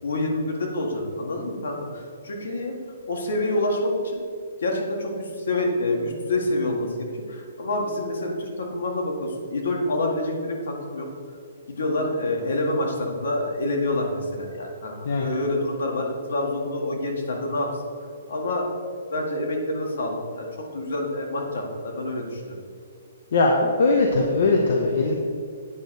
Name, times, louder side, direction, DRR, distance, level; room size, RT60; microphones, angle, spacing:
voice 1, 0.0-2.8 3.1-4.2 4.6-11.1 11.7-14.9 15.2-17.7 18.3-18.7 19.1-20.5 20.7-22.6, left 1 dB, 70° left, 1 dB, 1.8 m, -27 dB
voice 2, 23.3-25.1, left 3 dB, 55° left, 1 dB, 0.8 m, -20 dB
8.6 x 4.0 x 6.4 m, 2.2 s
hypercardioid pair, 175°, 0 cm